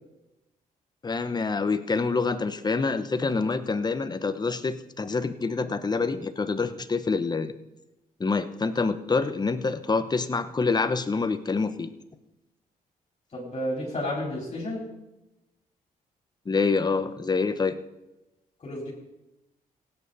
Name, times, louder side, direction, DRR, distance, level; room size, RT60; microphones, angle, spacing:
voice 1, 1.0-7.5 8.2-11.9 16.5-17.8, left 4 dB, 25° left, 10 dB, 1.0 m, -26 dB
voice 2, 13.3-14.9 18.6-18.9, left 1 dB, 45° left, -3 dB, 4.1 m, -31 dB
16.5 x 9.0 x 4.2 m, 0.97 s
cardioid pair, 80°, 15 cm